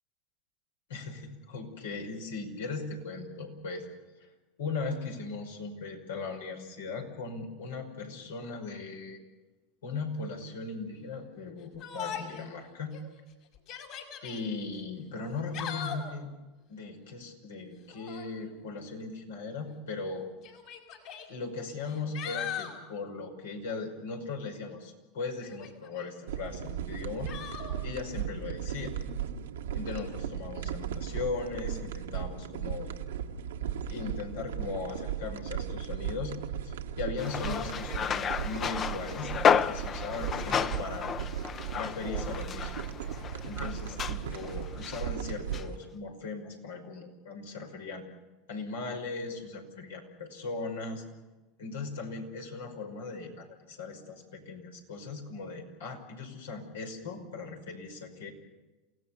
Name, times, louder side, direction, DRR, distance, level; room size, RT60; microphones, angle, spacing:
voice 1, 0.9-3.9 4.2-4.3 4.6-9.2 9.8-13.0 14.2-16.3 16.7-20.3 21.3-27.3 27.8-29.0 29.7-32.9 33.9-36.4 36.6-41.1 41.7-42.7 43.4-48.0 48.5-51.0 51.6-58.3, left 4 dB, 85° left, 3 dB, 5.3 m, -38 dB
Yell, 11.8-12.5 12.9-13.0 13.5-14.4 15.3-16.1 17.9-18.3 19.5-19.6 20.4-21.3 21.8-22.8 25.4-26.1 27.3-27.7, left 8 dB, 60° left, 5.2 m, -39 dB
sound 1, 26.3-45.8, right 8 dB, 90° right, 1.6 m, -36 dB
sound 2, 37.2-45.1 45.5-45.6, left 7 dB, 35° left, 0.9 m, -31 dB
28.5 x 17.5 x 7.1 m, 1.1 s
hypercardioid pair, 100°, 0 cm